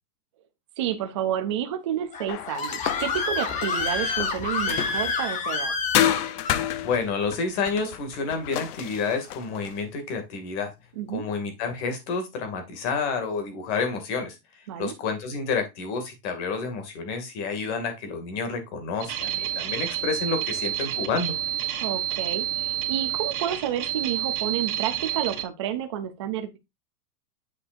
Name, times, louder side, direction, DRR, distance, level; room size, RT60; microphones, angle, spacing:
voice 1, 0.8-5.7 10.9-11.2 14.7-14.9 21.8-26.6, right 10 dB, 25° right, 0.3 m, -30 dB
Screaming, 2.1-6.7, left 4 dB, 15° left, 0.8 m, -28 dB
sound 1, 2.3-5.3 5.9-9.8, left 12 dB, 75° left, 0.9 m, -30 dB
voice 2, 6.8-10.7 11.1-14.4 14.8-21.3, left 4 dB, 45° left, 2.4 m, -29 dB
sound 2, 19.0-25.4, right 12 dB, 70° right, 2.0 m, -29 dB
7.5 x 6.7 x 2.6 m
supercardioid pair, 155°, 46 cm